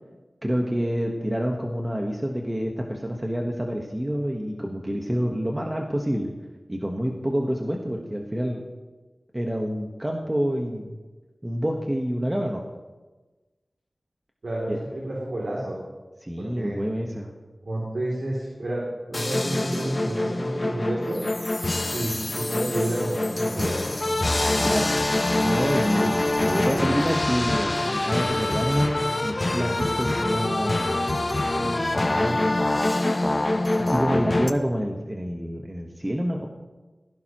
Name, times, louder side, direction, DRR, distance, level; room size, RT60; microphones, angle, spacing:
voice 1, 0.4-6.3 6.7-8.6 9.3-10.9 11.4-12.6 14.7-14.8 16.2-17.3 24.6-24.9 25.4-31.0 31.6-32.4 33.8-36.5, equal, 20° right, 1 dB, 1.3 m, -27 dB
voice 2, 14.4-15.8 16.4-16.8 17.7-18.8 19.1-21.2 21.9-23.8, right 1 dB, 80° right, -4 dB, 2.9 m, -30 dB
sound 1, 19.1-34.5, left 2 dB, 40° left, 0.8 m, -25 dB
17.5 x 16.0 x 3.1 m, 1.2 s
wide cardioid pair, 60°, 0 cm